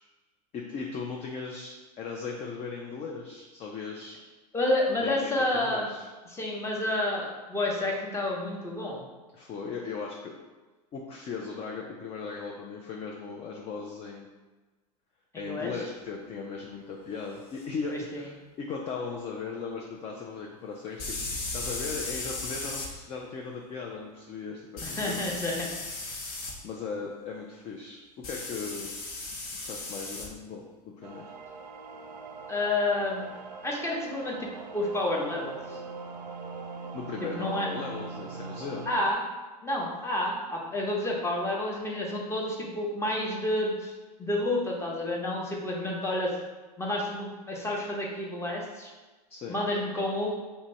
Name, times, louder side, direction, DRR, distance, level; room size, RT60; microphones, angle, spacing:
voice 1, 0.5-4.2 5.0-6.1 9.3-10.3 10.9-14.3 15.4-21.2 21.5-25.2 26.6-28.9 29.6-31.3 36.9-38.9 49.3-49.6, left 5 dB, 30° left, 0 dB, 0.4 m, -38 dB
voice 2, 4.5-5.9 6.3-9.1 15.3-15.7 17.9-18.2 24.8-25.7 32.5-33.3 33.6-35.8 37.3-37.7 38.9-39.2 39.6-43.9 44.2-46.3 46.8-48.9 49.5-50.3, left 1 dB, 15° left, -2 dB, 0.9 m, -30 dB
sound 1, 17.5-17.6 21.0-22.9 24.8-26.5 28.2-30.3, left 2 dB, 45° left, 0.9 m, -36 dB
sound 2, 31.0-39.1, right 4 dB, 85° right, 0.4 m, -41 dB
2.8 x 2.7 x 4.3 m, 1.2 s
hypercardioid pair, 100°, 21 cm